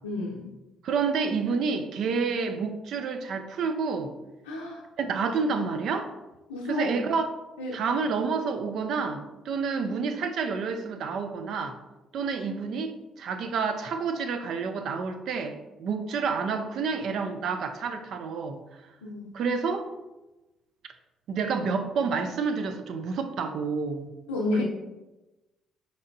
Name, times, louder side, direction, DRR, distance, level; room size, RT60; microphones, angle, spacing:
voice 1, 0.0-0.5 4.5-4.8 6.5-7.0 7.6-7.8 19.0-19.3 24.3-24.6, left 2 dB, 90° left, -5 dB, 0.5 m, -30 dB
voice 2, 0.8-4.2 5.0-6.1 6.6-7.3 7.7-11.8 12.1-18.6 19.3-19.9 21.3-24.1 24.5-24.6, right 5 dB, 65° right, 8 dB, 0.4 m, -29 dB
5.1 x 2.9 x 2.6 m, 1.1 s
hypercardioid pair, 50°, 0 cm